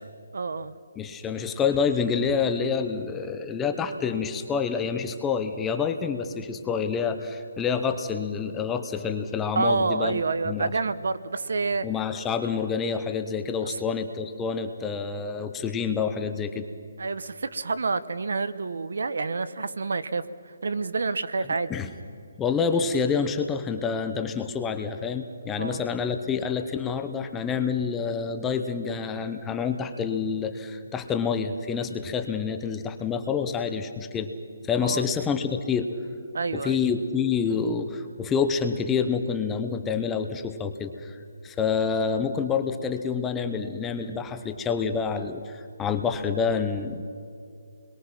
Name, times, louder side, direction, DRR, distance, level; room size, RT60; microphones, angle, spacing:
voice 1, 0.3-0.7 9.6-11.9 13.6-13.8 17.0-20.2 20.6-21.7 25.6-25.8 34.8-35.1 36.3-36.8, right 4 dB, 65° right, 14 dB, 1.0 m, -28 dB
voice 2, 1.0-10.7 11.8-16.7 21.7-21.9 22.4-34.3 34.6-35.9 36.5-41.2 41.4-47.0, left 6 dB, 10° left, 7 dB, 0.7 m, -27 dB
28.5 x 22.0 x 6.0 m, 2.5 s
hypercardioid pair, 175°, 0 cm